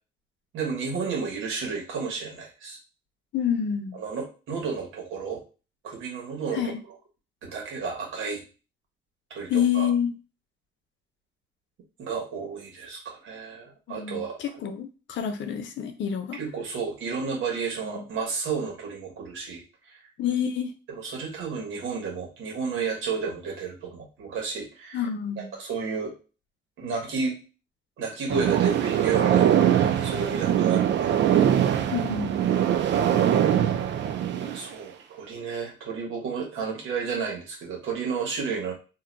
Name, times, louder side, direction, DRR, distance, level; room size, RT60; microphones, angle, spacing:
voice 1, 0.5-2.8 4.0-5.4 5.8-6.7 7.4-8.4 9.3-9.9 12.0-14.4 16.4-20.0 20.9-25.0 25.4-26.1 26.8-27.4 28.0-31.5 34.4-38.7, right 5 dB, 90° right, -1 dB, 1.4 m, -32 dB
voice 2, 3.3-4.0 6.5-6.8 9.5-10.1 13.9-16.4 17.8-18.0 20.2-20.7 24.9-25.5 31.9-32.4, left 8 dB, 70° left, 7 dB, 0.7 m, -28 dB
sound 1, 28.3-34.7, right 10 dB, 65° right, 0.4 m, -22 dB
2.7 x 2.2 x 3.9 m, 0.32 s
cardioid pair, 90°, 20 cm